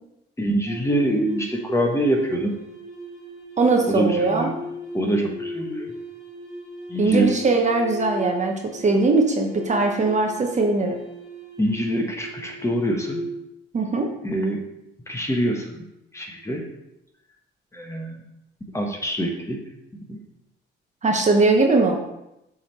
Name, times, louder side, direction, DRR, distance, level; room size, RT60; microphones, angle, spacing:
voice 1, 0.4-2.6 3.9-4.6 4.9-5.9 6.9-7.3 11.6-13.3 14.2-14.6 15.1-15.9 16.1-16.7 17.7-18.2 18.7-19.6 20.1-20.2, right 1 dB, 15° left, 1 dB, 1.2 m, -25 dB
sound 1, 0.6-13.4, left 1 dB, ahead, 2.6 m, -38 dB
voice 2, 3.6-4.5 7.0-11.0 13.7-14.1 21.0-22.0, right 3 dB, 35° right, 2 dB, 1.0 m, -20 dB
7.1 x 3.6 x 4.6 m, 0.87 s
cardioid pair, 90°, 20 cm